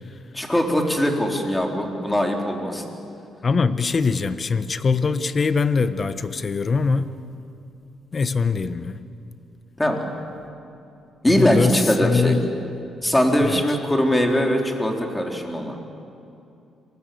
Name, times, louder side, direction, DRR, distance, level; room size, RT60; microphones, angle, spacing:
voice 1, 0.3-2.9 9.8-10.1 11.2-12.3 13.0-15.8, equal, 10° left, 2 dB, 4.3 m, -21 dB
voice 2, 3.4-7.1 8.1-9.0 11.3-12.4 13.4-13.6, left 4 dB, 40° left, 12 dB, 1.3 m, -22 dB
27.5 x 24.0 x 7.9 m, 2.6 s
cardioid pair, 90°, 0 cm